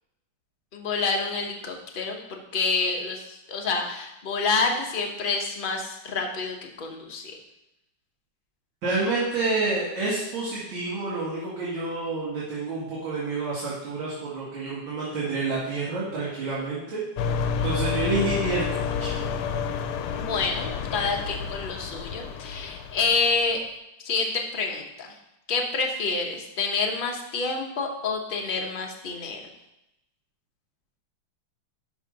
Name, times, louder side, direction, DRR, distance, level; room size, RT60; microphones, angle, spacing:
voice 1, 0.7-7.4 20.1-23.6 24.0-25.2 25.5-29.4, left 4 dB, 40° left, 1 dB, 0.8 m, -28 dB
voice 2, 8.8-17.0 17.6-19.1, right 3 dB, 65° right, -8 dB, 2.9 m, -28 dB
sound 1, 17.2-23.5, left 6 dB, 85° left, 1.6 m, -30 dB
11.0 x 3.8 x 5.3 m, 0.88 s
omnidirectional pair, 2.4 m